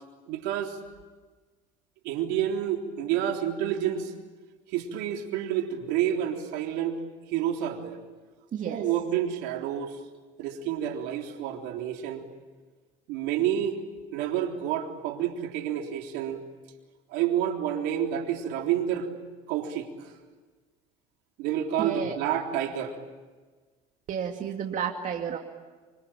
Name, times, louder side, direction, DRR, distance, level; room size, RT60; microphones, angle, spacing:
voice 1, 0.3-0.8 2.0-4.1 4.7-7.0 7.3-8.0 8.6-10.0 10.4-12.3 13.1-13.7 14.1-16.4 17.1-19.1 19.5-20.1 21.4-23.0, right 10 dB, 75° right, 3 dB, 3.6 m, -29 dB
voice 2, 8.5-8.9 21.8-22.2 24.1-25.4, right 8 dB, 50° right, 3 dB, 2.4 m, -31 dB
26.0 x 25.0 x 8.9 m, 1.3 s
supercardioid pair, 80°, 17 cm